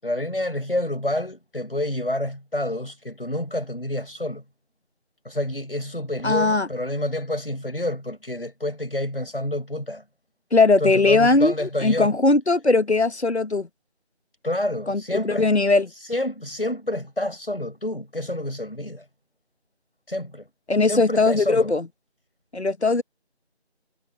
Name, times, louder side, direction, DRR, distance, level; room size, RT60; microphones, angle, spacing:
voice 1, 0.0-4.4 5.3-10.0 10.8-12.1 14.4-15.5 15.9-19.1 20.1-20.5 20.8-21.7, left 1 dB, 60° left, 5.5 m, -28 dB
voice 2, 6.2-6.7 10.5-11.5 11.8-13.7 14.9-15.9 20.7-21.9 22.5-23.0, left 3 dB, 75° left, 1.3 m, -19 dB
figure-of-eight pair, 180°, 33 cm